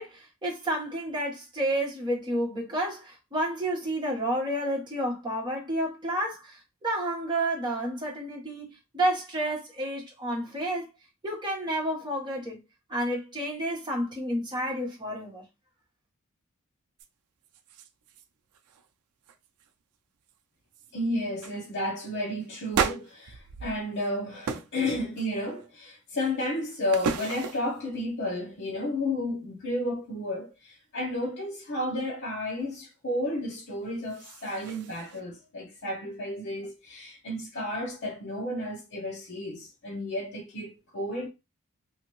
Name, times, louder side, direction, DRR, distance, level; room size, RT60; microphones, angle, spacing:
voice 1, 0.0-10.9 11.2-12.6 12.9-15.4, right 1 dB, 20° right, 1.1 m, -30 dB
sound 1, 17.0-17.1 17.4-18.3 18.5-18.9 19.2-19.7 20.3-20.4 20.7-20.9 21.4-21.6 22.7-24.1 24.4-24.8 25.2-25.7 26.2-27.8 33.8-35.2, right 6 dB, 85° right, 0.4 m, -34 dB
voice 2, 20.9-41.3, left 1 dB, 55° left, 0.9 m, -32 dB
2.8 x 2.5 x 3.0 m
head